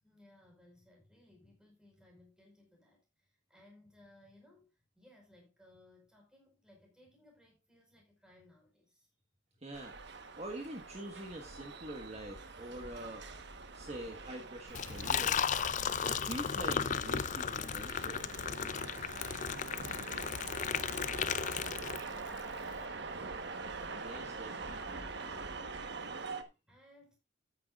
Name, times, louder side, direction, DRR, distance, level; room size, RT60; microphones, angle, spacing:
voice 1, 0.0-9.1 19.0-23.5 26.2-27.1, left 1 dB, 5° right, 5.0 m, -63 dB
voice 2, 9.6-13.2 13.7-15.5 16.0-18.3 23.9-25.1 26.4-26.5, right 1 dB, 35° right, 1.6 m, -45 dB
sound 1, 9.7-26.4, right 4 dB, 55° right, 1.3 m, -44 dB
Liquid, 14.7-22.4, left 7 dB, 40° left, 0.4 m, -35 dB
13.5 x 9.6 x 2.5 m
head